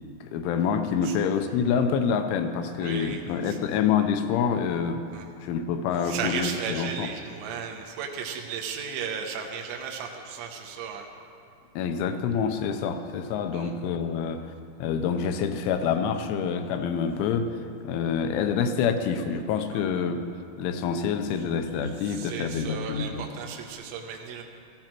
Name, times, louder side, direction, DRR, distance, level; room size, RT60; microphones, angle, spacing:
voice 1, 0.2-5.1 5.4-7.1 11.8-14.5 14.8-17.6 17.8-20.3 20.6-23.3, left 6 dB, 90° left, 7 dB, 3.3 m, -27 dB
voice 2, 2.7-3.6 5.1-5.3 6.0-11.1 13.5-13.7 19.7-19.8 21.8-24.4, right 6 dB, 75° right, 1 dB, 3.1 m, -35 dB
17.5 x 14.5 x 4.5 m, 2.5 s
omnidirectional pair, 5.4 m